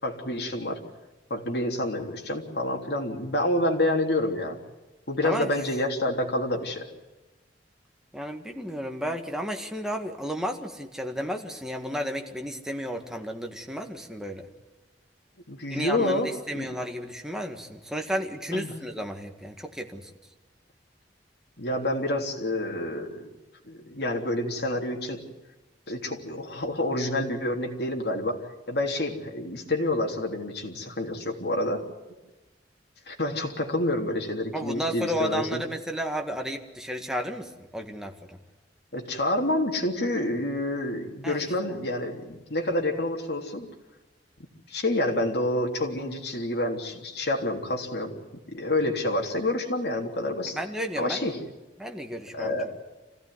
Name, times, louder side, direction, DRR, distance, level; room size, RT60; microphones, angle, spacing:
voice 1, 0.0-0.8 1.3-4.6 5.1-6.9 15.5-16.7 18.5-18.7 21.6-23.4 23.7-25.2 25.9-28.4 28.7-31.9 33.1-35.6 38.9-43.7 44.7-48.2 48.5-50.6 51.0-51.4 52.3-52.7, left 1 dB, 65° left, 1 dB, 3.4 m, -28 dB
voice 2, 8.1-14.5 15.7-20.1 34.5-38.4 41.2-41.5 50.5-51.4 51.8-52.5, equal, 5° right, 3 dB, 1.9 m, -33 dB
25.5 x 16.0 x 9.5 m, 1.1 s
head